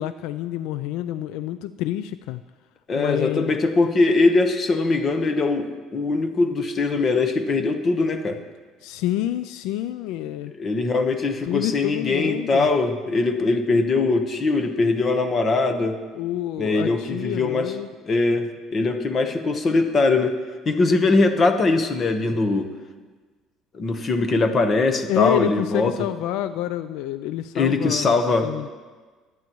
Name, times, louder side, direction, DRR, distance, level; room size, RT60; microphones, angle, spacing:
voice 1, 0.0-2.4 2.9-3.6 8.8-10.5 11.5-12.7 16.1-17.9 25.1-28.7, left 12 dB, 75° left, 12 dB, 0.3 m, -28 dB
voice 2, 2.9-8.4 10.6-16.0 16.6-17.7 18.1-20.3 20.6-22.7 23.7-25.9 27.5-28.5, left 3 dB, 30° left, 7 dB, 1.0 m, -21 dB
23.0 x 9.4 x 3.1 m, 1.4 s
cardioid pair, 155°, 0 cm